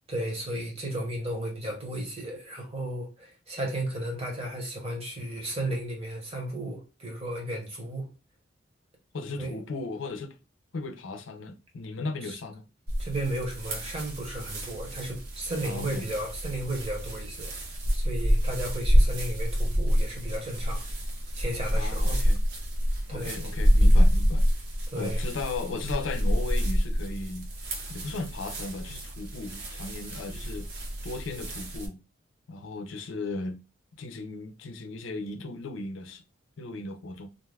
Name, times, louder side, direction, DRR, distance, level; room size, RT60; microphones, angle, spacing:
voice 1, 0.1-8.1 9.4-9.6 12.2-12.3 13.0-17.5 17.9-20.8 21.4-22.2 23.1-23.4 24.9-25.2, right 1 dB, 30° right, 1.0 m, -34 dB
voice 2, 9.1-10.3 10.7-12.7 15.6-16.1 21.7-22.4 23.1-24.5 24.9-27.5 27.9-30.7 31.0-32.0 32.5-33.6 34.0-36.2 36.6-37.3, left 3 dB, 90° left, 0.5 m, -36 dB
sound 1, 12.9-31.9, equal, 60° right, 0.8 m, -27 dB
2.5 x 2.3 x 3.3 m
head